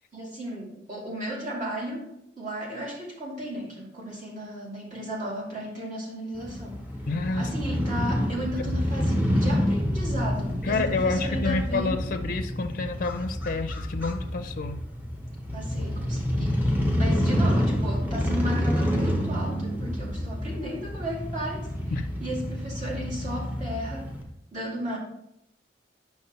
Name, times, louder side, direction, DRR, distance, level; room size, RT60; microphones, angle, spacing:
voice 1, 0.1-2.1 2.4-6.8 7.4-12.1 15.5-16.7 17.0-21.7 22.2-24.1 24.5-25.0, right 1 dB, 45° right, -5 dB, 2.3 m, -34 dB
Crow / Motorcycle, 6.3-24.2, equal, 10° right, 1.0 m, -28 dB
voice 2, 7.1-7.5 8.3-8.5 10.6-14.8 21.9-22.1, left 3 dB, 50° left, 8 dB, 0.5 m, -29 dB
8.9 x 5.9 x 2.9 m, 0.79 s
head